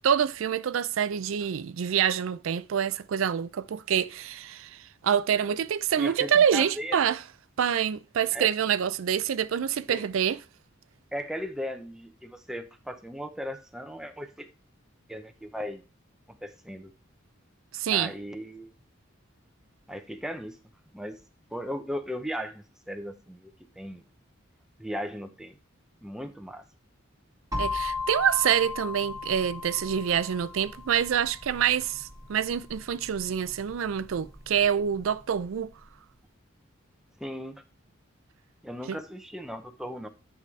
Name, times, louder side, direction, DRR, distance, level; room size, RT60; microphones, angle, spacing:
voice 1, 0.0-7.2 7.6-10.4 17.7-18.1 27.6-35.7 38.9-39.0, right 8 dB, 85° right, 0.4 m, -26 dB
voice 2, 6.0-7.0 8.3-8.5 9.9-10.0 11.1-14.5 15.1-15.8 16.3-16.9 17.9-18.7 19.9-20.6 20.9-21.2 21.5-24.0 24.8-25.6 26.0-26.6 37.2-37.6 38.6-40.1, equal, 5° right, 0.7 m, -37 dB
sound 1, 27.5-35.3, left 4 dB, 20° right, 1.6 m, -37 dB
9.1 x 4.9 x 3.2 m
head